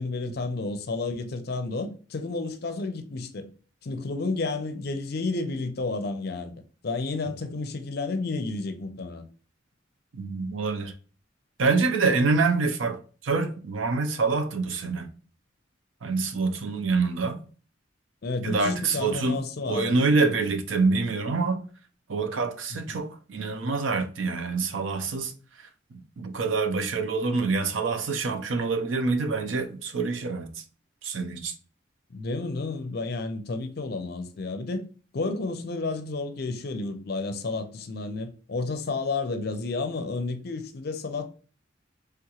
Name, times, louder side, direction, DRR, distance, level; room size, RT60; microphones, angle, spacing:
voice 1, 0.0-3.5 3.8-6.5 6.8-9.2 18.2-20.0 32.1-34.9 35.1-41.3, left 3 dB, 55° left, 0.5 m, -31 dB
voice 2, 10.1-10.9 11.6-15.1 16.0-17.4 18.4-19.4 19.7-21.6 22.1-25.3 25.9-30.5 31.0-31.5, right 4 dB, 90° right, 0.5 m, -26 dB
3.4 x 2.9 x 2.3 m
head